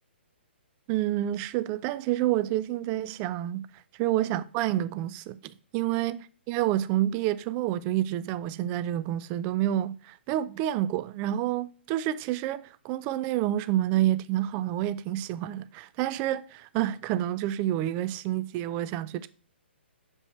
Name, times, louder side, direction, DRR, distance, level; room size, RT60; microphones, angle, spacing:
voice 1, 0.9-3.7 4.0-6.2 6.5-19.3, right 13 dB, 25° right, 0.3 m, -28 dB
6.5 x 5.3 x 3.1 m
hypercardioid pair, 140°, 6 cm